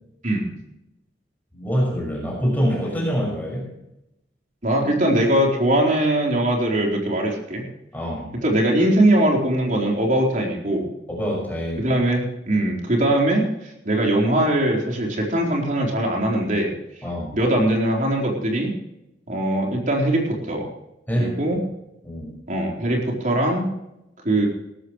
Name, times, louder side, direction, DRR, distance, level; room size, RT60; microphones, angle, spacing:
voice 1, 1.5-3.6 7.9-8.3 11.1-11.9 17.0-17.4 21.1-21.3 22.0-22.3, equal, 10° left, -2 dB, 6.0 m, -25 dB
voice 2, 4.6-7.7 8.4-10.9 11.8-16.7 17.3-18.7 19.3-20.7 21.2-21.6 22.5-23.7 24.2-24.5, right 1 dB, 45° right, 0 dB, 4.2 m, -21 dB
18.0 x 14.0 x 3.2 m, 0.87 s
head